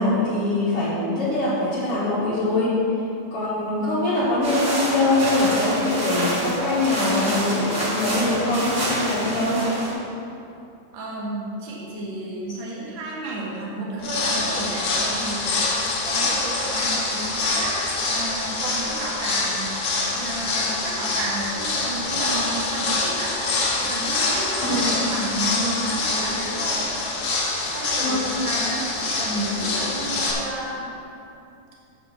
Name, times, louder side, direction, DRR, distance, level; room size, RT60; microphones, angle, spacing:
voice 1, 0.0-2.8 3.3-9.7 24.7-24.9 28.0-28.2, left 2 dB, 70° left, -10 dB, 1.4 m, -23 dB
sound 1, 4.4-9.9, right 1 dB, 35° right, 2.2 m, -27 dB
voice 2, 10.9-15.5 16.0-19.7 20.1-23.4 23.7-26.8 27.6-30.9, right 2 dB, 85° right, -4 dB, 1.0 m, -32 dB
sound 2, 14.0-30.3, left 3 dB, 90° left, 1.3 m, -25 dB
8.1 x 5.1 x 7.1 m, 2.7 s
omnidirectional pair, 4.7 m